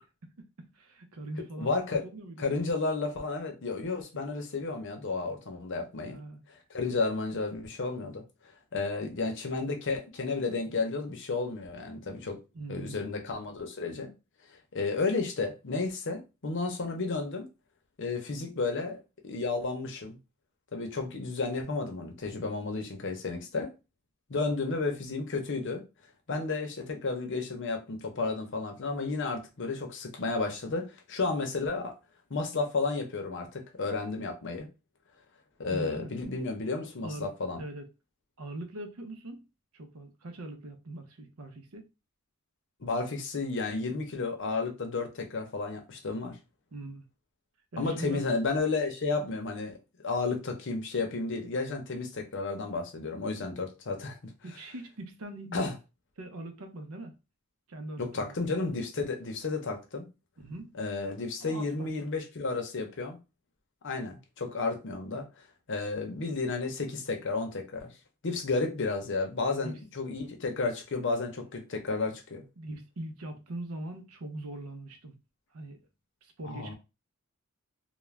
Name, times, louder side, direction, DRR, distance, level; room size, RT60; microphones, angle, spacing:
voice 1, 0.4-1.8 2.0-2.5 6.1-6.4 12.5-13.0 35.7-36.1 37.0-37.9 38.4-39.4 39.7-41.9 46.7-47.1 47.7-48.2 54.4-55.7 56.2-57.1 57.7-58.4 60.4-60.7 61.4-61.9 69.5-69.8 72.6-75.2 75.5-75.8 76.2-76.7, right 2 dB, 85° right, 0.6 m, -41 dB
voice 2, 1.6-2.0 2.4-6.2 6.7-8.2 8.7-12.4 12.7-14.1 14.7-17.5 18.0-20.2 20.7-23.7 24.3-25.8 26.3-32.0 32.3-34.7 35.6-37.6 42.8-46.4 47.8-49.8 50.0-54.3 55.5-55.7 58.0-60.0 60.8-63.2 63.8-65.3 65.7-67.9 68.2-72.4 76.4-76.7, left 3 dB, 60° left, 0.7 m, -32 dB
2.4 x 2.1 x 3.2 m
head